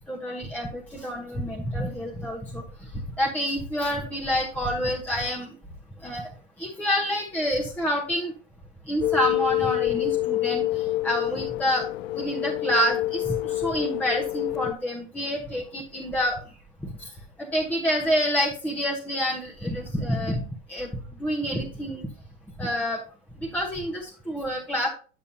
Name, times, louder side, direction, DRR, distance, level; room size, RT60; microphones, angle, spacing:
voice 1, 0.1-2.6 3.2-5.5 6.0-6.3 6.6-8.3 8.9-11.8 12.1-16.4 17.0-17.1 17.4-20.4 20.7-20.9 21.2-22.1 22.6-23.0 23.4-24.9, equal, 5° left, -1 dB, 0.9 m, -28 dB
sound 1, 9.0-14.7, left 16 dB, 90° left, 0.5 m, -27 dB
8.6 x 7.1 x 2.7 m, 0.39 s
supercardioid pair, 135°, 37 cm